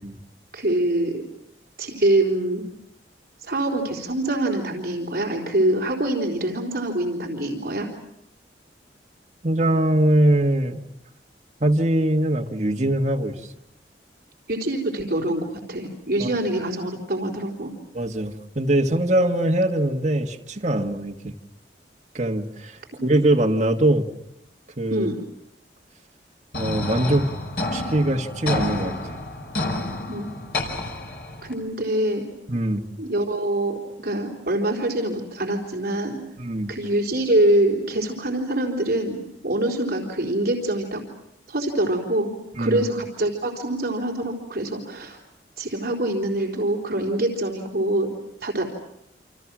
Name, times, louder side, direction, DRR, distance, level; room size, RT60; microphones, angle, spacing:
voice 1, 0.5-1.1 1.8-2.6 3.4-7.9 14.5-17.7 24.9-25.2 30.1-30.3 31.4-32.2 33.0-36.2 36.7-41.0 41.5-42.3 42.6-45.2 45.6-48.1 48.4-48.6, right 1 dB, 55° right, 0 dB, 4.1 m, -24 dB
voice 2, 9.4-10.8 11.6-13.3 16.2-16.3 17.9-21.3 22.1-24.1 24.8-25.1 26.5-27.3 27.7-29.0 32.5-32.8 36.4-36.7 42.6-42.8, right 1 dB, 40° right, 1 dB, 1.7 m, -22 dB
sound 1, 26.5-31.5, left 2 dB, 60° left, 5.3 m, -29 dB
28.5 x 27.5 x 6.2 m, 0.79 s
head